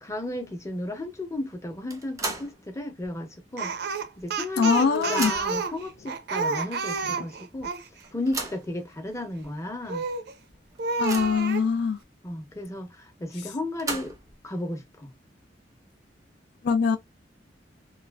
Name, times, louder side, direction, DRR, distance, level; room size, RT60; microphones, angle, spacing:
voice 1, 0.0-3.7 4.2-7.7 8.1-10.0 12.2-14.2 14.4-15.1, left 1 dB, 15° left, 0.7 m, -34 dB
sound 1, 1.9-2.6 3.0-3.1 4.2-4.3 4.6-5.7 6.4-6.5 6.9-7.0 8.0-8.7 9.4-9.5 9.9-10.0 10.5-11.5 13.5-14.4, right 3 dB, 20° right, 0.6 m, -35 dB
Speech, 3.6-7.9 9.9-10.3 10.8-11.7, right 4 dB, 65° right, 0.5 m, -30 dB
voice 2, 4.6-5.3 7.2-7.3 11.0-12.0 16.6-17.0, left 5 dB, 65° left, 0.4 m, -23 dB
3.1 x 2.4 x 2.2 m
head